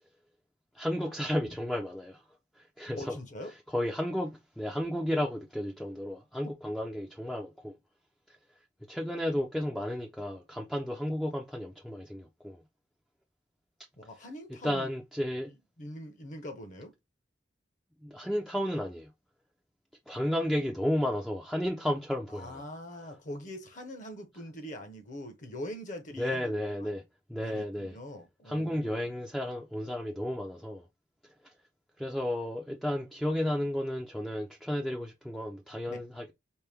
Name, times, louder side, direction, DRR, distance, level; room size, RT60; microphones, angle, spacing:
voice 1, 0.7-2.2 2.8-3.2 3.7-7.8 8.3-8.4 8.9-12.6 14.6-15.5 18.0-19.1 20.1-22.6 26.2-27.0 27.3-28.0 28.5-30.8 31.4-31.5 32.0-36.3, left 1 dB, ahead, 0.4 m, -33 dB
voice 2, 3.0-3.5 14.0-14.9 15.4-16.9 22.3-26.5 26.8-27.0 27.4-29.1 35.9-36.0, left 1 dB, 45° left, 0.8 m, -43 dB
4.4 x 2.1 x 3.4 m
head